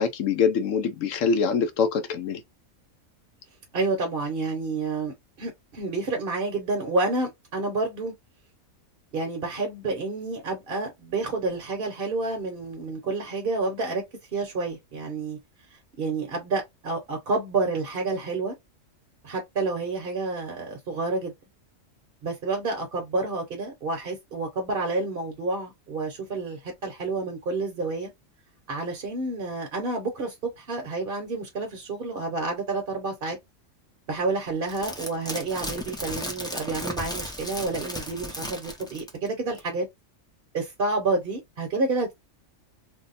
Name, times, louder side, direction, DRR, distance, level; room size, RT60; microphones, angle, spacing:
voice 1, 0.0-2.4, left 6 dB, 75° left, 0.9 m, -24 dB
voice 2, 3.7-8.1 9.1-14.0 14.3-15.4 16.0-18.5 19.2-21.3 22.2-28.1 28.7-33.4 34.1-39.9 40.5-42.1, right 3 dB, 50° right, 0.9 m, -29 dB
sound 1, 34.7-39.3 39.6-39.7, equal, 5° left, 0.3 m, -35 dB
2.7 x 2.1 x 4.0 m
omnidirectional pair, 1.4 m